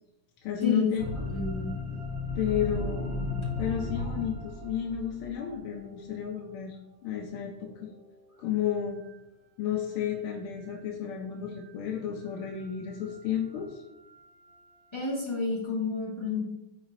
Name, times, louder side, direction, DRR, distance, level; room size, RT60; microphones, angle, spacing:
voice 1, 0.4-1.2 2.3-6.8 7.0-7.9 8.4-9.0 9.6-13.8, left 9 dB, 85° left, 0 dB, 1.5 m, -32 dB
sound 1, 1.0-6.4 7.6-8.6 9.0-9.1 11.6-11.7 12.2-15.2, left 3 dB, 55° right, 3.0 m, -37 dB
voice 2, 1.3-1.7 14.9-16.4, left 4 dB, 15° left, -5 dB, 1.2 m, -30 dB
9.3 x 4.1 x 2.6 m, 0.94 s
omnidirectional pair, 2.3 m